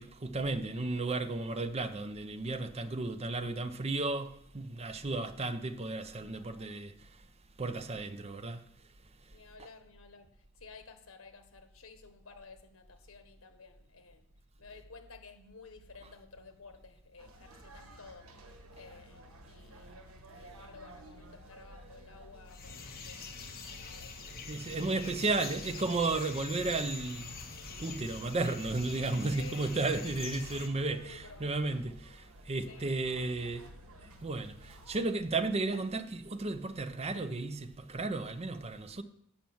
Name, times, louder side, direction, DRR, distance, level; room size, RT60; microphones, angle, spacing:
voice 1, 0.0-7.1 7.6-8.6 24.5-27.3 27.8-33.6 34.2-39.0, right 3 dB, 30° right, 0.6 m, -34 dB
voice 2, 6.3-6.7 9.3-10.3 10.6-14.3 14.6-18.3 18.7-20.0 20.4-24.2 24.8-25.2 29.3-29.6 29.9-30.2 31.0-31.5 32.7-33.5, left 4 dB, 85° left, 1.3 m, -54 dB
sound 1, 17.2-35.0, equal, 80° right, 1.3 m, -54 dB
sound 2, 22.5-30.7, left 4 dB, 45° left, 1.2 m, -45 dB
7.7 x 5.8 x 7.1 m
head